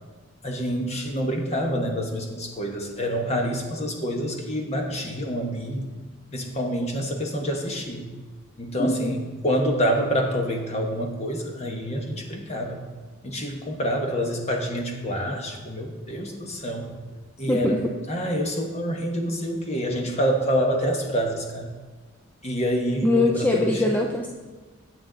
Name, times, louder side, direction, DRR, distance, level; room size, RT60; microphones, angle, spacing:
voice 1, 0.4-5.9 6.3-8.1 8.6-12.8 13.2-16.9 17.4-17.8 18.1-21.7 22.4-23.8, equal, 30° left, 2 dB, 1.1 m, -27 dB
voice 2, 17.5-17.8 23.0-24.3, left 1 dB, 10° left, 1 dB, 0.4 m, -22 dB
8.8 x 7.8 x 3.9 m, 1.3 s
head